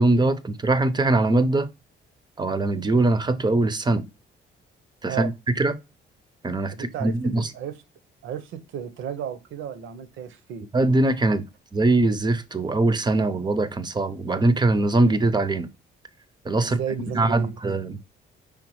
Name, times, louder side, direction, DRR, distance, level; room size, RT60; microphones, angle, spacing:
voice 1, 0.0-1.7 2.4-4.1 5.0-5.8 6.4-7.5 10.7-11.5 11.7-15.7 16.5-16.8 17.1-18.0, right 2 dB, 20° right, 0.5 m, -22 dB
voice 2, 6.7-7.8 8.2-10.6 16.6-17.5, right 8 dB, 80° right, 0.7 m, -33 dB
5.2 x 3.4 x 3.0 m
cardioid pair, 90°, 20 cm